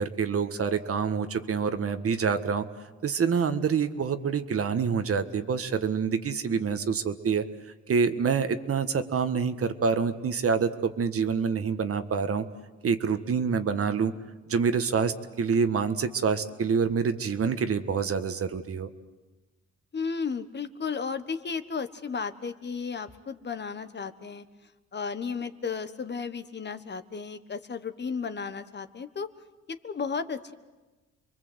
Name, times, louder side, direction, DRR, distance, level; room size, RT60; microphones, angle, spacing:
voice 1, 0.0-2.6 3.0-7.4 7.9-12.4 12.8-14.1 14.5-18.9, right 6 dB, 50° right, 9 dB, 1.6 m, -26 dB
voice 2, 19.9-24.4 24.9-29.3 29.8-30.5, left 5 dB, 35° left, 11 dB, 1.3 m, -34 dB
29.0 x 22.5 x 8.1 m, 1.2 s
cardioid pair, 90°, 30 cm